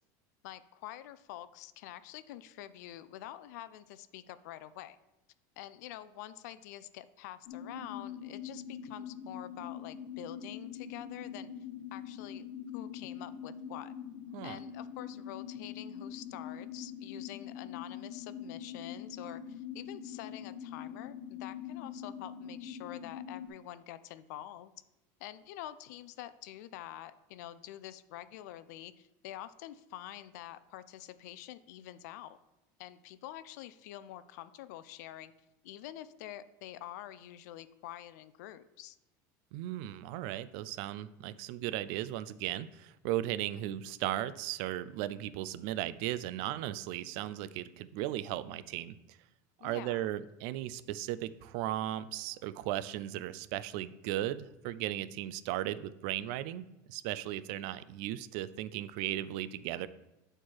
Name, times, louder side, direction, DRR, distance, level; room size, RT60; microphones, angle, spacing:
voice 1, 0.4-5.0 5.6-11.5 11.9-12.4 12.7-13.9 14.4-24.7 25.2-32.4 32.8-35.3 35.6-39.0 49.6-50.1, left 13 dB, 70° left, 14 dB, 0.5 m, -47 dB
sound 1, 7.5-23.5, left 8 dB, 55° left, 1.1 m, -44 dB
voice 2, 39.5-49.2 49.6-59.9, right 13 dB, 50° right, 15 dB, 0.4 m, -36 dB
8.7 x 4.4 x 4.7 m, 0.99 s
cardioid pair, 175°, 9 cm